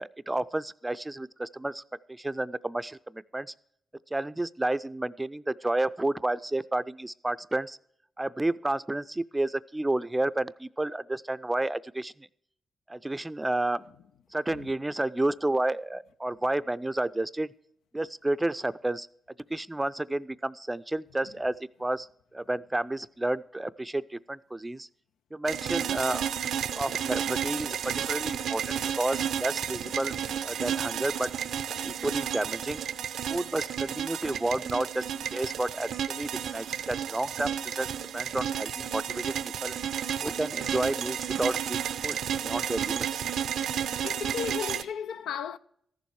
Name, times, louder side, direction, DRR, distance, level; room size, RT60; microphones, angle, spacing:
voice 1, 0.0-1.8 2.1-3.5 4.1-7.8 8.2-12.3 12.9-13.9 14.3-17.5 17.9-19.1 19.5-24.9 25.3-26.3 26.7-30.2 30.4-31.3 31.7-32.8 33.3-39.7 40.2-43.3, right 2 dB, 15° right, 0.4 m, -31 dB
sound 1, 25.5-44.8, right 9 dB, 85° right, 0.6 m, -32 dB
voice 2, 43.8-45.6, left 8 dB, 90° left, 0.4 m, -35 dB
14.0 x 7.1 x 4.7 m
cardioid pair, 65°, 0 cm